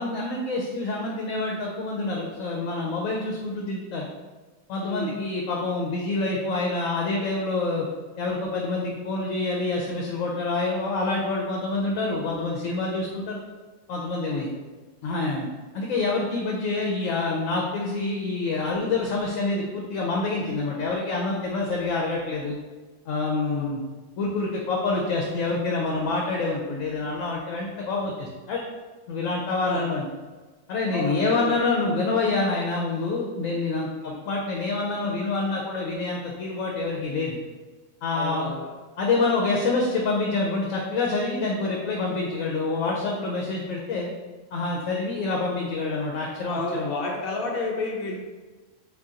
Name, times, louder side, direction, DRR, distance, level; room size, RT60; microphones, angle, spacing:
voice 1, 0.0-4.1 4.7-7.8 8.2-13.4 13.9-14.5 15.0-15.5 15.7-22.6 23.1-23.8 24.2-28.6 29.1-30.0 30.7-37.4 38.0-38.5 39.0-44.1 44.5-47.0, left 3 dB, 80° left, -1 dB, 1.0 m, -27 dB
voice 2, 4.8-5.1 14.3-14.5 23.4-23.7 29.7-29.9 30.9-31.5 34.0-34.2 38.1-38.7 46.5-48.2, left 2 dB, 55° left, -1 dB, 0.8 m, -31 dB
4.0 x 2.5 x 3.6 m, 1.3 s
omnidirectional pair, 1.4 m